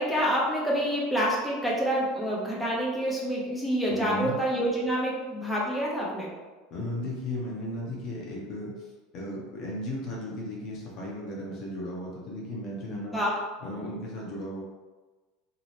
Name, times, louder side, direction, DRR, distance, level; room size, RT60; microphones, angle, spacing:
voice 1, 0.0-6.3 12.9-13.4, equal, ahead, -5 dB, 0.8 m, -27 dB
voice 2, 3.9-4.4 6.7-13.2 13.6-14.6, left 1 dB, 45° left, -3 dB, 0.8 m, -35 dB
2.9 x 2.8 x 3.0 m, 1.2 s
figure-of-eight pair, 75°, 0 cm